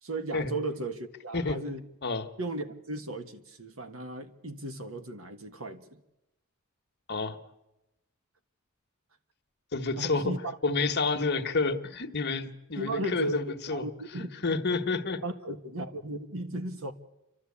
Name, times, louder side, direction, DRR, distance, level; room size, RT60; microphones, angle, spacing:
voice 1, 0.0-1.8 2.4-5.8 10.0-10.6 12.7-13.4 13.7-14.3 15.2-16.9, right 1 dB, 80° right, 8 dB, 1.6 m, -35 dB
voice 2, 9.7-10.3 10.6-13.9 14.4-15.2, left 3 dB, 55° left, 7 dB, 1.3 m, -29 dB
29.0 x 12.5 x 8.6 m, 0.95 s
head